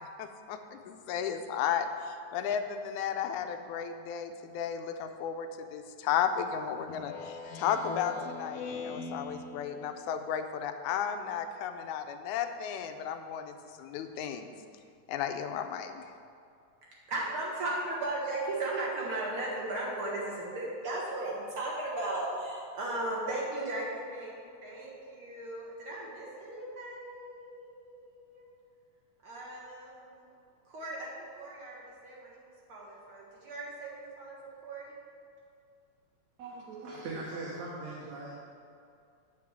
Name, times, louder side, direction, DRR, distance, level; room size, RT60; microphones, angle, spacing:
voice 1, 0.0-14.5 15.1-16.0, left 8 dB, 90° left, 8 dB, 2.0 m, -34 dB
Speech synthesizer, 6.9-9.9, left 4 dB, 70° left, 1.6 m, -41 dB
voice 2, 17.1-28.5 29.2-30.3 30.7-34.9, right 2 dB, 55° right, -4 dB, 1.9 m, -37 dB
voice 3, 36.4-38.4, right 2 dB, 70° right, -4 dB, 2.3 m, -40 dB
8.5 x 4.7 x 7.3 m, 2.4 s
omnidirectional pair, 3.4 m